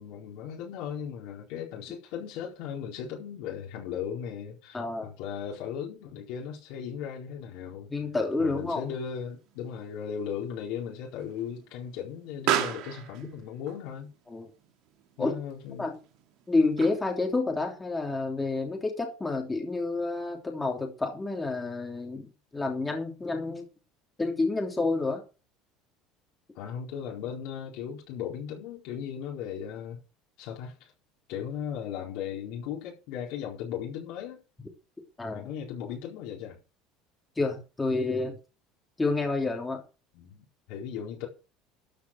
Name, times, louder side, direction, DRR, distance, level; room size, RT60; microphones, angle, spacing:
voice 1, 0.0-7.9 8.4-14.1 15.2-15.9 26.5-30.0 30.4-30.9 31.3-34.4 35.3-36.6 40.1-41.3, left 8 dB, 70° left, 4.3 m, -37 dB
voice 2, 4.7-5.1 7.9-8.8 14.3-14.5 15.2-15.3 15.8-16.0 16.5-23.6 24.2-25.2 35.2-35.5 37.4-38.4 39.0-39.8, left 3 dB, 15° left, 3.1 m, -29 dB
Explosion, 8.3-17.3, right 11 dB, 65° right, 2.2 m, -37 dB
13.0 x 6.2 x 6.3 m
supercardioid pair, 115°, 0 cm